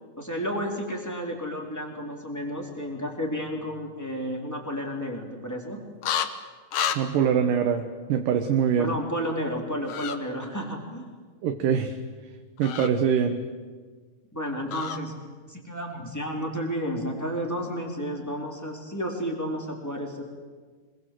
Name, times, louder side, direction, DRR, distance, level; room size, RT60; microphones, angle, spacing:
voice 1, 0.2-5.8 8.8-11.0 14.3-15.1 15.5-20.2, equal, 5° left, 0 dB, 3.5 m, -32 dB
sound 1, 6.0-6.3 6.7-7.0 9.9-10.2 12.6-12.9 14.7-15.0, left 9 dB, 60° left, 1.7 m, -28 dB
voice 2, 7.0-7.8 8.1-8.9 11.4-11.9 12.6-13.4, right 7 dB, 70° right, 6 dB, 2.7 m, -23 dB
26.5 x 21.0 x 7.8 m, 1.5 s
omnidirectional pair, 4.2 m